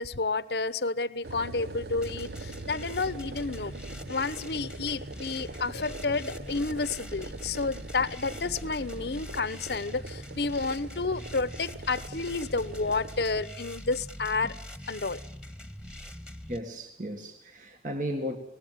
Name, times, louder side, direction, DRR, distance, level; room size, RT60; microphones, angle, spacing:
voice 1, 0.0-3.7 4.1-14.5 14.9-15.2, left 3 dB, 70° left, 0.9 m, -30 dB
sound 1, 1.2-13.4, right 3 dB, 70° right, 1.0 m, -43 dB
sound 2, 2.0-16.6, equal, 5° right, 1.6 m, -43 dB
voice 2, 16.5-18.4, equal, 45° right, 1.9 m, -35 dB
25.0 x 18.5 x 9.3 m
head